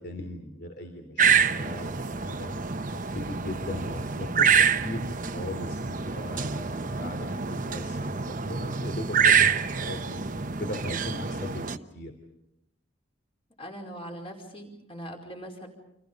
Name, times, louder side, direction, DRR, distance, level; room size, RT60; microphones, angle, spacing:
voice 1, 0.0-2.5 2.9-9.4 9.8-10.2 10.6-12.1, left 1 dB, 55° left, 4 dB, 3.3 m, -38 dB
sound 1, 1.2-11.8, right 6 dB, 40° right, 1.0 m, -26 dB
voice 2, 13.6-15.7, equal, 30° left, 3 dB, 4.8 m, -41 dB
30.0 x 27.5 x 5.4 m, 0.81 s
head